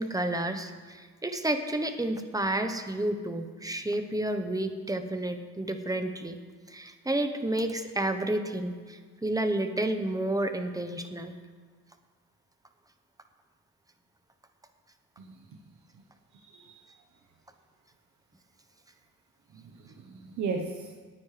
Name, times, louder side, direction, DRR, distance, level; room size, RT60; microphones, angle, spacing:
voice 1, 0.0-6.4 6.7-11.3, right 1 dB, 10° right, 7 dB, 1.0 m, -30 dB
voice 2, 16.3-16.9 19.5-20.9, right 4 dB, 70° right, 3 dB, 1.1 m, -36 dB
18.5 x 9.8 x 3.3 m, 1.5 s
cardioid pair, 90°, 30 cm